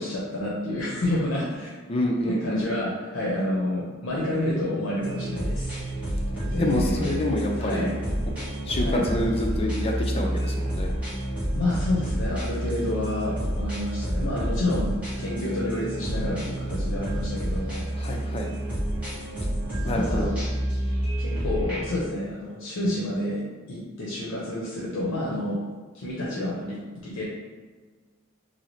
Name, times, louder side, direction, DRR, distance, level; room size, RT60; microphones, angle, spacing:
voice 1, 0.0-1.7 2.2-5.9 6.4-7.3 7.6-7.9 8.8-9.1 11.5-17.9 19.8-20.4 21.2-23.4 23.7-25.6 25.9-27.2, left 1 dB, 80° left, -6 dB, 0.6 m, -29 dB
voice 2, 1.9-2.7 6.6-7.9 8.7-10.9 18.0-18.5 19.8-20.3, left 1 dB, 30° left, 1 dB, 0.4 m, -27 dB
sound 1, 5.0-22.0, right 1 dB, 5° right, 1.5 m, -29 dB
2.8 x 2.7 x 3.1 m, 1.4 s
head